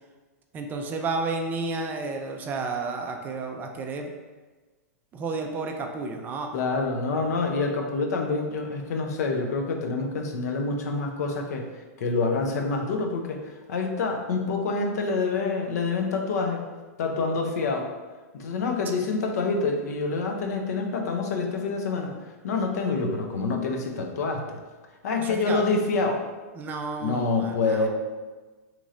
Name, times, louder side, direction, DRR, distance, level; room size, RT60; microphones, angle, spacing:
voice 1, 0.5-4.1 5.1-6.5 25.2-25.7 26.6-27.9, right 3 dB, 20° right, 3 dB, 0.3 m, -31 dB
voice 2, 6.5-11.7 12.0-16.6 17.0-17.9 18.3-22.1 22.4-24.6 25.0-26.2 27.0-27.9, left 4 dB, 75° left, 3 dB, 0.6 m, -27 dB
3.0 x 2.4 x 4.1 m, 1.3 s
supercardioid pair, 145°, 9 cm